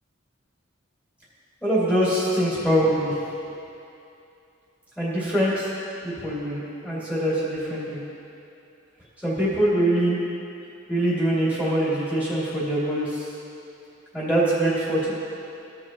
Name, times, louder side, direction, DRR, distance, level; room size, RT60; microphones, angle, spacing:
voice 1, 1.6-3.1 5.0-5.7 6.0-8.0 9.2-10.2 10.9-13.1 14.1-15.0, right 1 dB, 10° left, -10 dB, 2.3 m, -23 dB
15.5 x 6.4 x 3.0 m, 2.7 s
head